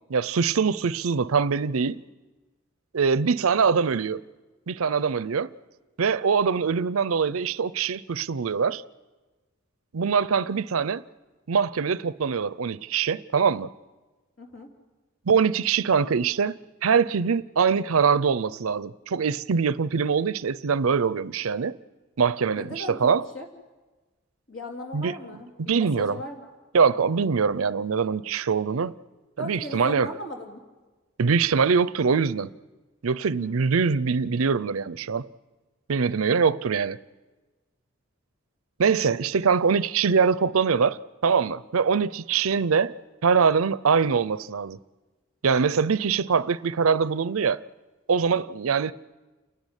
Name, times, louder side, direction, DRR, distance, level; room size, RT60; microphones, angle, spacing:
voice 1, 0.1-2.0 2.9-4.2 4.7-5.5 6.0-8.8 9.9-11.0 11.5-13.7 15.3-16.6 16.8-21.8 22.2-23.3 24.9-25.1 25.6-26.2 26.7-28.9 29.4-30.1 31.2-32.5 33.0-35.3 35.9-37.0 38.8-42.9 43.2-44.8 45.4-47.6 48.1-48.9, right 5 dB, 85° right, 0.6 m, -23 dB
voice 2, 14.4-14.7 22.5-23.5 24.5-26.5 29.4-30.6 33.4-33.7, left 1 dB, 70° left, 3.4 m, -38 dB
29.0 x 10.5 x 9.9 m
head